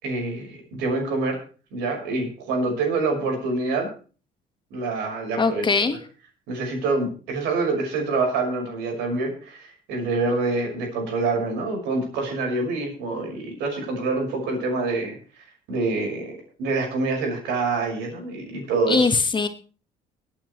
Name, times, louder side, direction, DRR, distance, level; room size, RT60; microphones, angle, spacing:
voice 1, 0.0-1.4 1.7-3.9 4.7-5.6 6.5-15.2 15.7-19.1, right 3 dB, 90° right, 2 dB, 6.0 m, -26 dB
voice 2, 5.4-6.0 18.9-19.5, left 4 dB, 30° left, 8 dB, 1.5 m, -21 dB
25.0 x 8.8 x 3.2 m, 0.38 s
cardioid pair, 110°, 17 cm